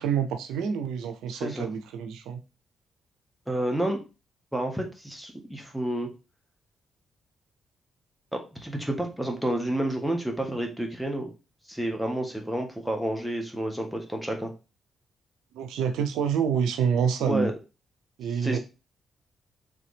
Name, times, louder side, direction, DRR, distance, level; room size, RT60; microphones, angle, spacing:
voice 1, 0.0-2.4 15.5-17.5 18.2-18.6, right 7 dB, 90° right, 8 dB, 0.5 m, -27 dB
voice 2, 1.3-1.7 3.5-4.0 4.5-6.1 8.3-11.3 11.7-14.5 17.3-17.5 18.3-18.6, right 1 dB, ahead, 3 dB, 1.3 m, -30 dB
3.9 x 3.3 x 3.3 m, 0.30 s
cardioid pair, 65°, 0 cm